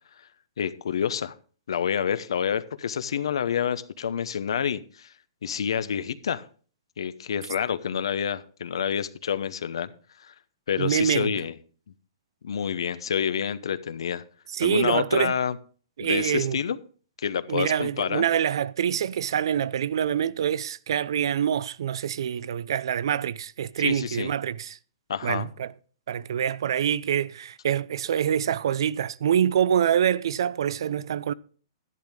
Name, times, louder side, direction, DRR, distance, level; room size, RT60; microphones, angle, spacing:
voice 1, 0.6-1.3 1.7-5.1 5.4-6.5 7.0-9.9 10.2-10.3 10.7-11.5 12.4-14.2 14.6-15.6 16.0-16.8 17.2-18.3 23.8-24.3 25.1-25.5, left 8 dB, 80° left, 0.7 m, -28 dB
voice 2, 10.8-11.3 14.5-15.3 16.0-16.6 17.5-24.8 25.2-25.7 26.1-31.3, right 9 dB, 70° right, 0.4 m, -25 dB
11.0 x 10.0 x 3.5 m
hypercardioid pair, 160°, 3 cm